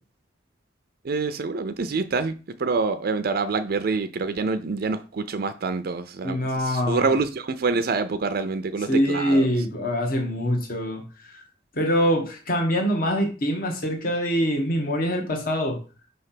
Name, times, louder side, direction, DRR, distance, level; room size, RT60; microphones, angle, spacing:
voice 1, 1.0-9.5, right 4 dB, 55° right, 0.4 m, -26 dB
voice 2, 6.2-7.1 8.9-11.0 11.8-15.8, equal, 50° left, 1.3 m, -24 dB
5.4 x 3.3 x 5.7 m
head